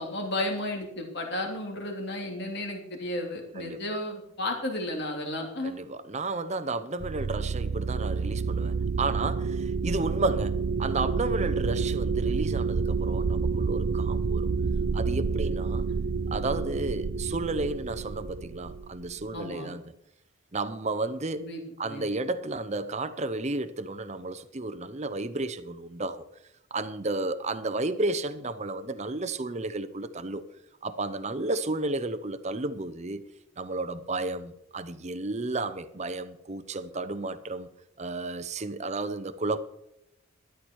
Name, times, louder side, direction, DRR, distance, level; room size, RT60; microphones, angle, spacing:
voice 1, 0.0-5.8 19.3-19.7 21.4-22.1, left 1 dB, 50° left, 3.1 m, -33 dB
voice 2, 5.6-14.5 14.9-15.8 16.3-19.8 20.5-21.4 21.8-26.3 26.7-30.4 30.8-33.2 33.6-37.7 38.0-39.6, right 2 dB, 30° right, 0.7 m, -32 dB
sound 1, 7.0-19.3, right 4 dB, 85° right, 0.6 m, -29 dB
13.0 x 12.0 x 4.7 m
head